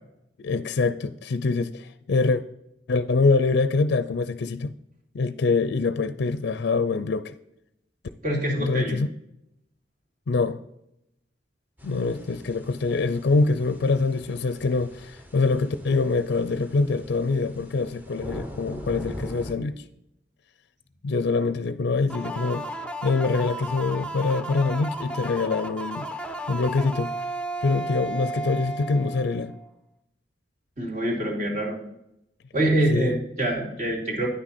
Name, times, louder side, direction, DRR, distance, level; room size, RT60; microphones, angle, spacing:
voice 1, 0.4-2.4 2.9-4.7 5.1-7.3 8.6-9.1 10.3-10.6 11.8-19.8 21.0-22.7 23.0-26.1 26.5-27.1 27.6-29.5 32.9-33.2, left 3 dB, 65° left, 0.4 m, -24 dB
voice 2, 8.2-8.9 30.8-31.8 32.5-34.3, right 1 dB, 45° right, 2.8 m, -25 dB
sound 1, 11.8-19.5, left 1 dB, 10° right, 0.9 m, -42 dB
sound 2, 22.1-29.7, right 2 dB, 5° left, 0.5 m, -34 dB
9.6 x 6.1 x 4.2 m
head